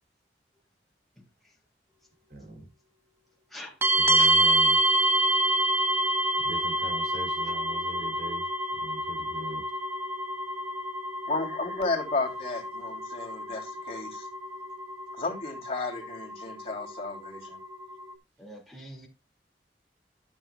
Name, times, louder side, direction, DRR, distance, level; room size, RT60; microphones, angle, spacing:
voice 1, 1.2-1.6 3.5-3.8 4.1-4.3 7.5-7.6 18.4-19.1, left 1 dB, ahead, 2.4 m, -45 dB
voice 2, 2.3-2.7 4.0-4.8 6.4-8.4 8.7-9.6, right 1 dB, 65° right, 2.9 m, -41 dB
sound 1, 3.8-18.1, right 1 dB, 15° right, 1.2 m, -28 dB
voice 3, 11.3-14.3 15.1-17.6, left 3 dB, 35° left, 3.0 m, -33 dB
13.5 x 7.3 x 2.3 m
head